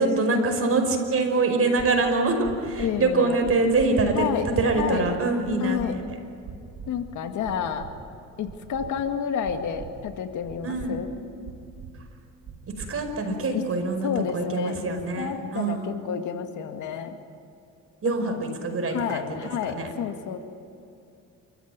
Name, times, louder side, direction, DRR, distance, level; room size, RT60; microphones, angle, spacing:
voice 1, 0.0-4.2 4.6-6.0 10.6-11.0 12.8-16.0 18.0-19.9, right 3 dB, 50° right, 4 dB, 5.4 m, -25 dB
sound 1, 1.8-1.9 2.4-2.9 3.4-3.9 4.4-4.9 5.4-5.9 6.4-6.9 7.4-7.9 8.4-8.9 9.4-9.9 10.4-10.9 11.4-11.9 12.4-12.9, right 7 dB, 80° right, 3.5 m, -40 dB
voice 2, 2.8-3.4 4.1-4.5 4.8-5.1 5.6-6.0 6.9-7.9 8.4-11.1 13.3-13.6 14.0-17.2 18.2-18.4 18.9-20.4, left 7 dB, 80° left, 6 dB, 2.2 m, -30 dB
28.5 x 14.5 x 9.6 m, 2.6 s
cardioid pair, 90°, 30 cm